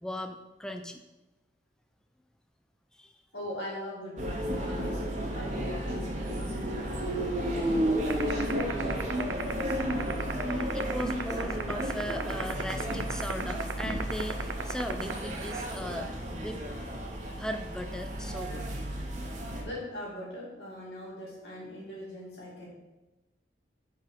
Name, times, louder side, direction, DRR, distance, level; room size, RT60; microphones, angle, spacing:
voice 1, 0.0-1.0 2.9-3.1 10.4-16.6 17.4-18.7, left 1 dB, 5° left, 6 dB, 0.3 m, -37 dB
voice 2, 3.3-5.0 5.3-7.0 8.0-10.1 19.6-22.7, left 1 dB, 80° left, -4 dB, 2.3 m, -40 dB
sound 1, 4.2-19.6, right 1 dB, 40° right, 1.0 m, -33 dB
sound 2, 8.1-15.6, right 6 dB, 85° right, 0.5 m, -32 dB
4.7 x 4.5 x 5.7 m, 1.0 s
head